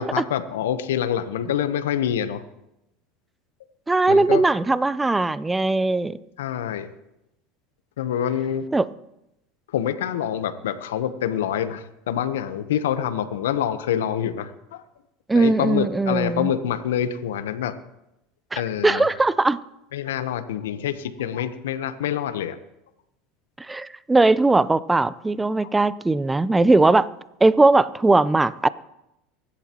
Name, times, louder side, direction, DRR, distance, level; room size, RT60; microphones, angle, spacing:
voice 1, 0.0-2.4 4.1-4.4 6.4-6.9 8.0-8.6 9.7-14.8 15.3-17.7 18.5-19.1 19.9-22.6 25.6-25.7, left 9 dB, 80° left, 10 dB, 1.0 m, -26 dB
voice 2, 3.9-6.2 8.7-8.9 15.3-16.5 18.5-19.6 23.7-27.1 27.4-28.7, right 2 dB, 15° right, 17 dB, 0.6 m, -19 dB
24.0 x 11.5 x 3.0 m, 0.88 s
hypercardioid pair, 85°, 0 cm